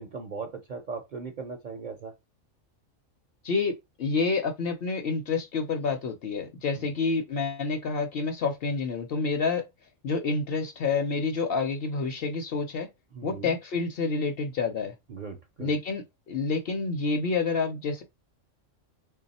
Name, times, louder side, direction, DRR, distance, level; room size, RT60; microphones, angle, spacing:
voice 1, 0.0-2.1 6.8-6.9 13.1-13.5 15.1-15.7, right 4 dB, 55° right, 0.5 m, -38 dB
voice 2, 3.4-9.6 10.0-12.9 13.2-14.9 15.6-18.0, left 4 dB, 60° left, 0.8 m, -28 dB
3.1 x 2.3 x 4.0 m
omnidirectional pair, 1.3 m